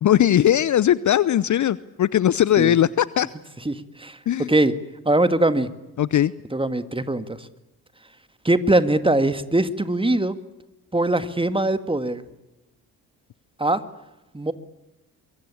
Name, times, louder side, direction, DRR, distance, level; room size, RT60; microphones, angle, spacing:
voice 1, 0.0-3.3 4.3-4.5 6.0-6.3, left 11 dB, 40° left, 20 dB, 0.8 m, -19 dB
voice 2, 3.7-4.2 4.5-4.7 5.1-5.7 6.5-7.5 8.4-10.4 10.9-12.2 13.6-13.8 14.3-14.5, right 2 dB, 10° right, 11 dB, 2.1 m, -21 dB
23.5 x 23.0 x 8.6 m, 1.0 s
figure-of-eight pair, 45°, 44 cm